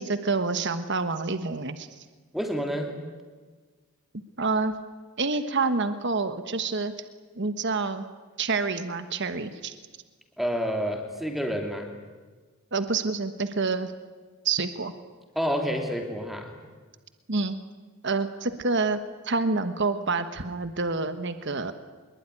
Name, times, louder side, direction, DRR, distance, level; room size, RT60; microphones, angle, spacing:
voice 1, 0.0-1.9 4.4-4.7 5.2-6.9 7.4-8.0 8.4-9.7 12.7-13.9 14.4-14.9 17.3-17.6 18.0-19.0 19.2-21.7, right 3 dB, 55° right, 10 dB, 1.3 m, -27 dB
voice 2, 2.3-3.0 10.4-11.9 15.3-16.6, equal, ahead, 3 dB, 2.9 m, -29 dB
24.5 x 22.0 x 9.9 m, 1.4 s
head